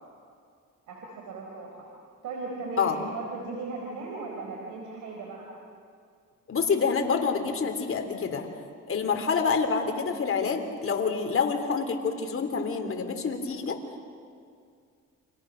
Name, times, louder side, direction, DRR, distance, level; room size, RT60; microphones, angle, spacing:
voice 1, 0.9-1.8 2.2-5.5, right 3 dB, 85° right, -1 dB, 4.6 m, -37 dB
voice 2, 6.5-8.5 8.9-13.8, left 5 dB, 45° left, 5 dB, 3.4 m, -27 dB
29.5 x 26.0 x 6.6 m, 2.2 s
cardioid pair, 90°, 30 cm